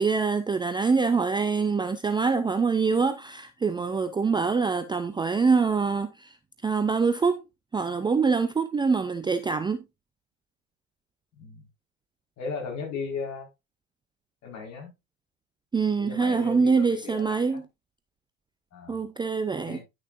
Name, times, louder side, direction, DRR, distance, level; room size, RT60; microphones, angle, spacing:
voice 1, 0.0-6.4 6.6-7.4 7.7-9.8 15.7-17.7 18.9-19.8, right 5 dB, 10° right, 0.5 m, -25 dB
voice 2, 12.4-13.5 14.4-14.9 16.0-17.6 18.7-19.0 19.6-19.8, left 4 dB, 45° left, 4.4 m, -36 dB
10.5 x 6.4 x 2.5 m
hypercardioid pair, 80°, 39 cm